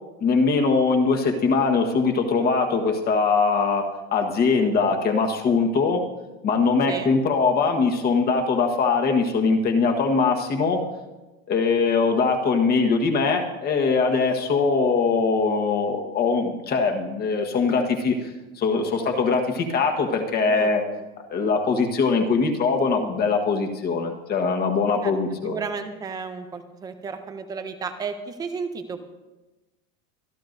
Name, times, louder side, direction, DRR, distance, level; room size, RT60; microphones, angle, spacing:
voice 1, 0.2-3.9 4.1-6.0 6.4-10.8 11.5-18.3 18.6-20.8 21.3-25.6, left 4 dB, 25° left, 4 dB, 1.3 m, -22 dB
voice 2, 25.4-29.1, right 5 dB, 10° right, 8 dB, 0.4 m, -33 dB
25.0 x 11.5 x 2.6 m, 1.1 s
supercardioid pair, 155°, 41 cm